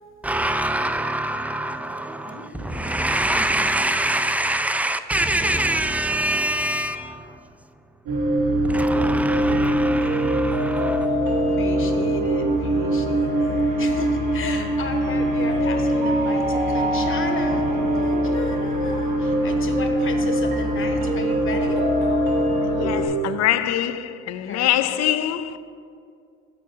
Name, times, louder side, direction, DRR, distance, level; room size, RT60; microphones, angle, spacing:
voice 1, 0.2-7.5 8.6-11.1, right 1 dB, 5° right, 0.3 m, -25 dB
voice 2, 2.3-3.8 11.6-17.6 17.9-21.9 24.4-24.9, left 4 dB, 40° left, 1.0 m, -34 dB
sound 1, 8.1-23.1, right 1 dB, 85° right, 2.0 m, -22 dB
voice 3, 22.6-25.6, left 12 dB, 60° left, 0.5 m, -24 dB
6.9 x 4.6 x 6.4 m
supercardioid pair, 80°, 31 cm